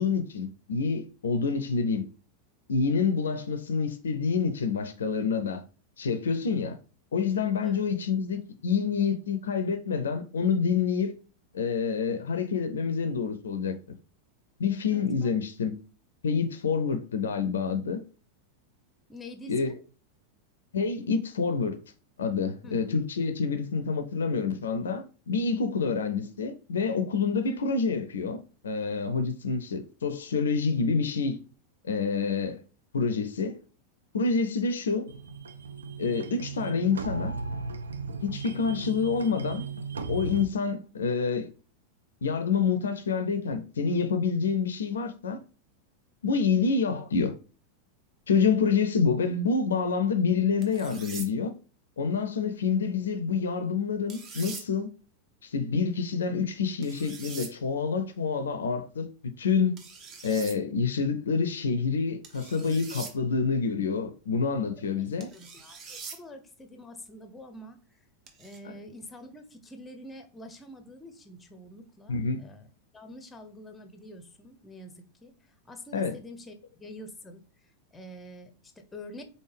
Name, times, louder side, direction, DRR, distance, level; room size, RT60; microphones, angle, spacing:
voice 1, 0.0-2.1 2.7-5.6 6.0-6.8 7.1-11.1 11.5-13.8 14.6-15.8 16.2-18.0 19.5-19.8 20.7-21.8 22.2-28.4 28.6-31.4 31.8-32.6 32.9-33.6 34.1-35.1 36.0-37.3 38.2-39.6 40.1-41.5 42.2-45.4 46.2-47.3 48.3-51.5 52.0-54.9 55.4-59.7 60.2-65.3 72.1-72.4 75.9-76.1, left 5 dB, 65° left, 0.4 m, -27 dB
voice 2, 14.9-15.3 19.1-19.7 22.6-22.8 64.8-68.0 68.4-77.4 77.9-79.2, left 1 dB, 10° left, 0.7 m, -47 dB
sound 1, 35.1-40.4, right 4 dB, 70° right, 0.4 m, -36 dB
sound 2, 50.6-51.3 54.1-54.7 56.8-57.5 59.8-60.6 62.2-63.1 65.2-66.2 68.3-68.6, right 5 dB, 30° right, 0.9 m, -43 dB
3.9 x 3.5 x 3.2 m
figure-of-eight pair, 90°, 0 cm